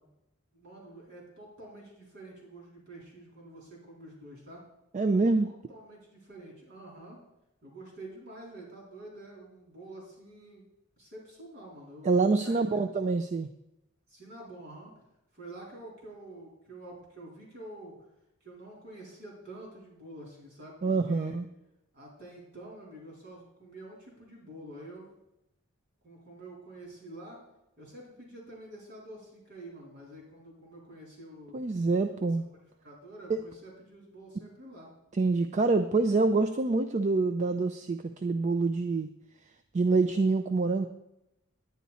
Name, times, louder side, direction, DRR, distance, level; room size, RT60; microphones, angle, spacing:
voice 1, 0.5-4.6 5.4-7.2 7.6-10.7 11.0-12.9 14.1-14.9 15.3-17.9 18.4-21.4 21.9-25.1 26.0-27.4 27.8-31.6 32.8-34.9, right 1 dB, 50° right, -2 dB, 3.9 m, -48 dB
voice 2, 4.9-5.5 12.0-13.5 20.8-21.5 31.5-32.4 33.3-33.4 35.2-39.1 39.7-40.9, right 3 dB, 35° right, 8 dB, 0.4 m, -26 dB
10.5 x 9.3 x 4.1 m, 0.87 s
head